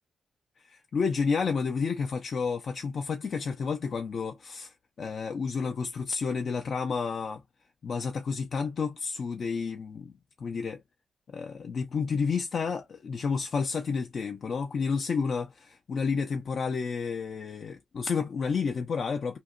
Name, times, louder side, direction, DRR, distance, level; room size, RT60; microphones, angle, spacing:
voice 1, 0.6-7.4 7.8-10.1 10.4-10.8 11.3-19.4, left 5 dB, 50° left, 0.5 m, -30 dB
2.8 x 2.6 x 2.4 m
wide cardioid pair, 140°, 0 cm